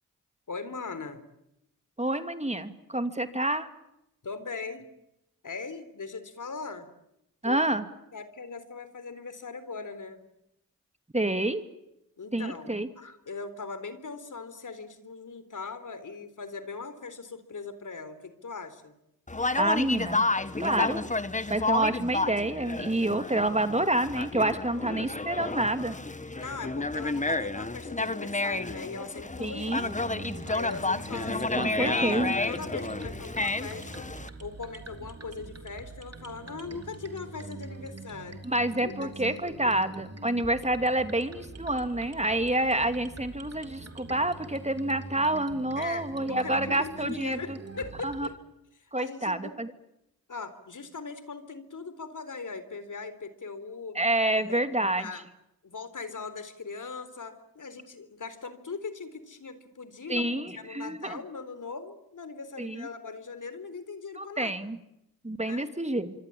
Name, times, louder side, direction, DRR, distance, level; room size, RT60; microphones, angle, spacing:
voice 1, 0.5-1.2 4.2-4.9 5.4-6.9 7.4-7.6 8.1-10.2 12.2-18.9 26.4-29.8 30.4-34.1 34.4-38.4 38.8-39.8 45.8-48.3 48.8-49.6 50.3-54.0 54.3-54.6 55.0-55.2 55.6-64.5 65.4-65.7, left 4 dB, 55° left, 12 dB, 3.9 m, -40 dB
voice 2, 2.0-3.7 7.4-7.8 11.1-11.6 12.3-12.9 19.6-20.3 20.6-21.0 21.5-26.0 29.4-30.0 31.3-32.4 38.4-47.6 48.0-48.3 48.9-49.7 53.9-55.1 60.1-61.2 62.6-62.9 64.2-64.8 65.2-66.1, right 1 dB, 20° right, 9 dB, 2.8 m, -28 dB
Conversation, 19.3-34.3, left 2 dB, 20° left, 1.6 m, -31 dB
sound 1, 29.7-48.3, right 3 dB, 45° right, 3.7 m, -44 dB
25.5 x 25.5 x 8.9 m, 0.84 s
supercardioid pair, 40°, 36 cm